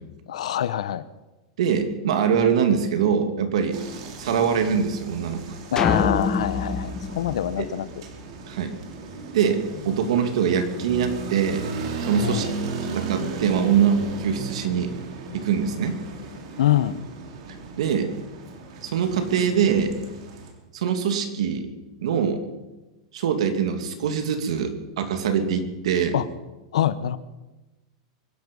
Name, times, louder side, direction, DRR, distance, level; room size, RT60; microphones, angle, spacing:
voice 1, 0.3-1.0 5.7-7.9 12.2-12.5 16.6-17.0 26.1-26.3 26.7-27.2, left 11 dB, 90° left, 15 dB, 0.9 m, -24 dB
voice 2, 1.6-3.8 4.2-5.5 8.5-8.7 9.3-11.6 12.0-12.5 12.9-14.9 15.3-16.0 17.8-18.1 18.8-19.9 20.7-21.7 22.0-22.4 23.1-26.2, right 7 dB, 75° right, 7 dB, 2.5 m, -23 dB
sound 1, 3.7-20.5, right 4 dB, 60° right, 3.3 m, -36 dB
sound 2, 5.8-8.2, left 5 dB, 15° left, 1.1 m, -26 dB
24.0 x 11.0 x 5.4 m, 1.1 s
supercardioid pair, 155°, 3 cm